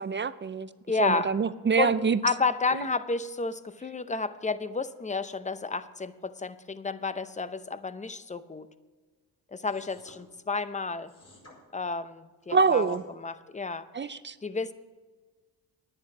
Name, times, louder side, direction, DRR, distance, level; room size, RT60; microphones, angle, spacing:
voice 1, 0.0-0.7 1.0-2.2 2.7-2.8 12.5-13.0 13.9-14.4, right 5 dB, 30° right, 15 dB, 0.4 m, -25 dB
voice 2, 0.9-1.3 1.8-2.0 2.2-8.7 9.5-11.1 11.7-14.1 14.4-14.7, left 4 dB, 20° left, 13 dB, 0.7 m, -31 dB
sound 1, 9.6-10.2 11.1-11.6 12.4-13.0, left 2 dB, 40° left, 4.8 m, -55 dB
10.5 x 9.6 x 6.0 m, 1.4 s
cardioid pair, 75°, 41 cm